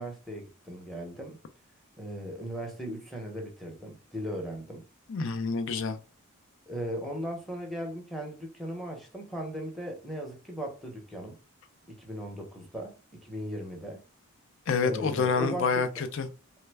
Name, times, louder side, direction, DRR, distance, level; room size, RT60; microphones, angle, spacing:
voice 1, 0.0-1.4 2.0-4.8 6.7-11.4 11.9-14.0 14.8-15.9, equal, ahead, 0.7 m, -38 dB
voice 2, 5.1-6.0 14.7-16.3, left 5 dB, 60° left, 0.4 m, -27 dB
3.2 x 2.1 x 3.3 m
head